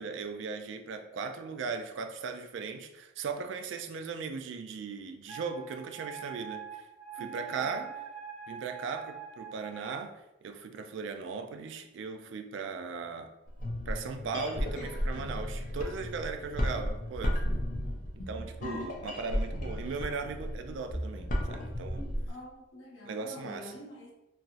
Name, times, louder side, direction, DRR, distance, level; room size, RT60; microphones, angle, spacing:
voice 1, 0.0-6.8 7.2-7.9 8.5-10.1 10.4-13.3 13.9-17.4 18.2-22.1 23.0-23.7, right 5 dB, 65° right, 6 dB, 0.3 m, -38 dB
Wind instrument woodwind instrument, 5.3-10.0, right 8 dB, 25° right, 0.6 m, -43 dB
voice 2, 7.2-7.9 22.3-24.1, left 1 dB, 70° left, -2 dB, 0.8 m, -48 dB
sound 1, 13.5-22.3, equal, 40° left, 0.5 m, -34 dB
3.0 x 2.5 x 2.5 m, 0.94 s
head